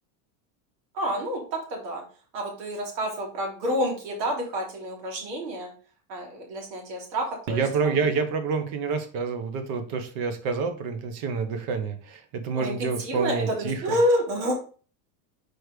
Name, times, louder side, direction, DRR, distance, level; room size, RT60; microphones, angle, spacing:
voice 1, 0.9-2.0 2.3-5.7 6.1-7.7 7.9-8.0 12.5-14.5, equal, 85° right, -1 dB, 3.3 m, -28 dB
voice 2, 7.5-14.0, right 5 dB, 45° right, 8 dB, 1.2 m, -28 dB
4.7 x 4.3 x 5.0 m, 0.38 s
supercardioid pair, 160°, 48 cm